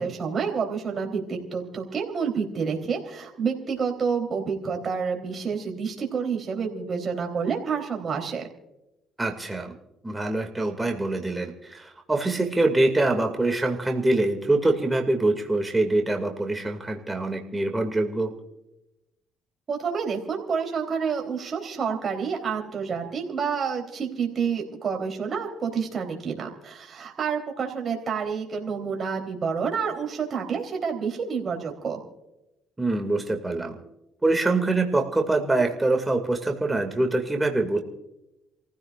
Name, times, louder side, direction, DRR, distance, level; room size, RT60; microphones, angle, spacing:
voice 1, 0.0-8.5 19.7-32.0, right 6 dB, 45° right, 1 dB, 3.6 m, -29 dB
voice 2, 9.2-9.7 10.0-18.3 32.8-33.8 34.2-37.8, right 2 dB, 15° right, 3 dB, 2.3 m, -24 dB
29.0 x 15.5 x 2.5 m, 0.92 s
cardioid pair, 85°, 0 cm